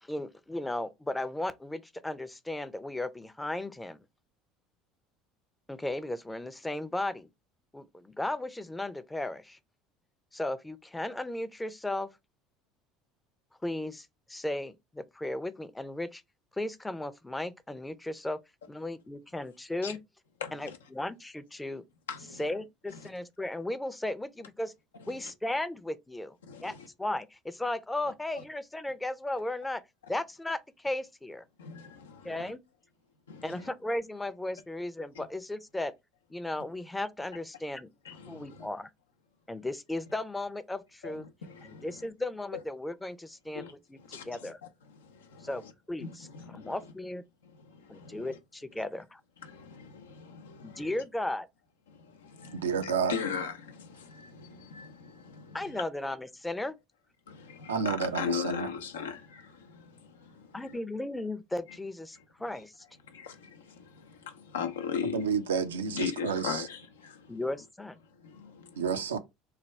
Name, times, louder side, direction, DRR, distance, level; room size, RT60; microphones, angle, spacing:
voice 1, 0.0-4.0 5.7-7.3 7.7-9.6 10.3-12.1 13.6-16.2 16.5-18.4 18.7-20.0 20.5-21.8 22.4-24.7 25.1-26.4 26.6-29.8 30.1-31.4 32.2-32.6 33.4-35.9 36.3-37.9 38.3-38.9 39.5-41.3 41.6-44.6 45.4-45.6 45.9-46.3 46.5-47.2 47.9-49.2 50.6-51.5 55.5-56.8 60.5-62.7 67.3-68.0, left 1 dB, 10° left, 0.5 m, -35 dB
voice 2, 20.4-20.8 22.1-22.4 22.9-23.0 25.0-25.3 26.4-26.9 31.6-32.5 33.3-33.7 35.2-35.3 38.0-38.7 41.0-42.1 42.5-42.6 43.5-43.7 44.0-44.5 44.9-45.7 46.0-46.8 47.4-48.4 49.4-51.0 51.9-55.8 57.3-60.8 62.1-62.2 63.1-65.3 65.9-67.4 68.1-68.8, left 6 dB, 80° left, 0.6 m, -39 dB
voice 3, 52.5-53.2 57.7-58.7 65.1-66.7 68.8-69.2, right 6 dB, 85° right, 0.4 m, -30 dB
3.2 x 2.2 x 4.2 m
hypercardioid pair, 70°, 0 cm